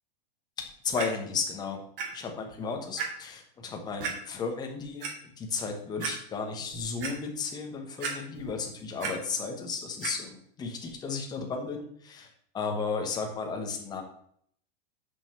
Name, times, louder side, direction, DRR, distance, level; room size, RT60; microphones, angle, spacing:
voice 1, 0.6-1.8 2.1-5.1 5.4-14.0, left 5 dB, 15° left, 3 dB, 1.1 m, -34 dB
Clock, 1.0-1.1 2.0-2.1 2.5-2.6 3.0-3.1 4.0-4.1 4.8-5.1 5.6-5.7 6.0-6.1 6.6-7.1 8.0-8.5 8.8-9.1 10.0-10.1 10.8-10.9, right 6 dB, 65° right, 2.4 m, -33 dB
6.2 x 5.6 x 6.7 m, 0.64 s
supercardioid pair, 170°, 29 cm